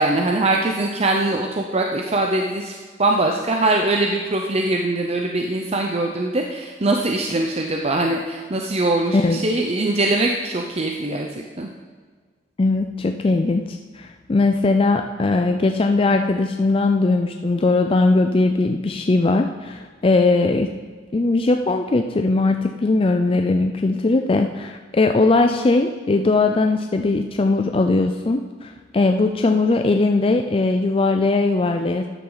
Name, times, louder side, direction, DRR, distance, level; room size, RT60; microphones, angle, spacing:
voice 1, 0.0-11.7, right 2 dB, 35° right, 2 dB, 0.7 m, -22 dB
voice 2, 9.1-9.4 12.6-20.7 21.1-32.0, left 3 dB, 30° left, 5 dB, 0.4 m, -19 dB
13.0 x 9.4 x 4.0 m, 1.5 s
head